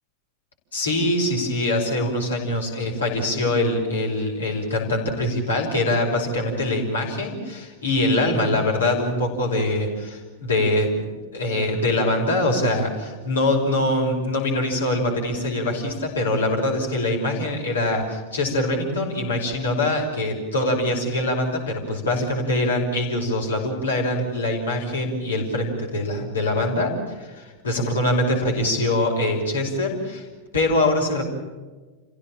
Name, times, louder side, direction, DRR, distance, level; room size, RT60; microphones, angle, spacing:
voice 1, 0.7-30.3 30.5-31.2, left 1 dB, 70° left, 1 dB, 5.7 m, -23 dB
28.5 x 16.5 x 7.3 m, 1.3 s
figure-of-eight pair, 90°, 0 cm